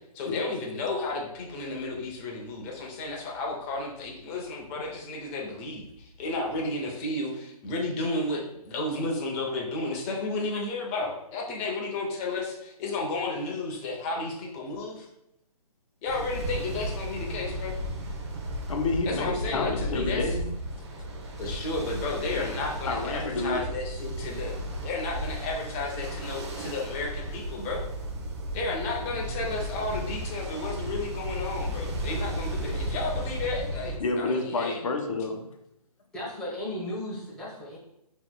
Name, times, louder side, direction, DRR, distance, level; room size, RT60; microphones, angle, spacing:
voice 1, 0.1-15.1 16.0-17.7 19.0-20.2 21.4-24.6 24.8-27.8 28.5-34.8, left 3 dB, 20° left, -1 dB, 0.7 m, -32 dB
Ocean, 16.1-34.0, right 1 dB, 45° right, 0.8 m, -34 dB
voice 2, 18.7-20.5 22.3-22.5 22.9-23.6 34.0-35.5, left 3 dB, 55° left, 4 dB, 0.8 m, -29 dB
voice 3, 36.1-37.8, left 1 dB, 5° left, -9 dB, 1.2 m, -35 dB
5.6 x 3.0 x 2.2 m, 0.81 s
hypercardioid pair, 145°, 20 cm